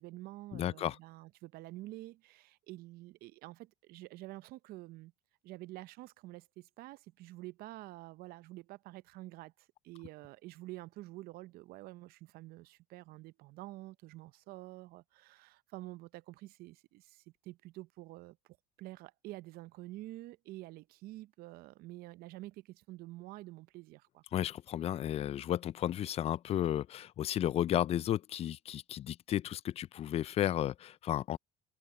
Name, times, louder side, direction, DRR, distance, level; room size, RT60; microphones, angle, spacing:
voice 1, 0.0-5.1 5.4-18.4 18.8-24.2, right 18 dB, 60° right, 0.7 m, -48 dB
voice 2, 0.5-1.0 24.3-31.4, left 11 dB, 35° left, 0.4 m, -33 dB
supercardioid pair, 100°, 18 cm